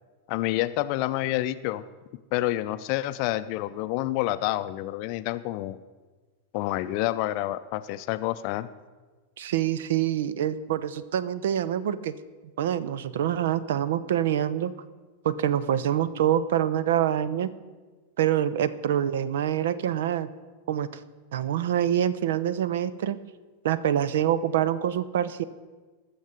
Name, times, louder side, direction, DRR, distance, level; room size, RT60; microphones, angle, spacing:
voice 1, 0.3-1.8 2.3-5.8 6.5-8.7, left 15 dB, 45° left, 13 dB, 0.5 m, -28 dB
voice 2, 9.4-12.1 12.6-14.7 15.2-17.5 18.2-20.3 20.7-20.9 21.3-23.2 23.6-25.4, right 10 dB, 60° right, 17 dB, 0.5 m, -25 dB
20.0 x 7.2 x 5.3 m, 1.3 s
figure-of-eight pair, 90°, 0 cm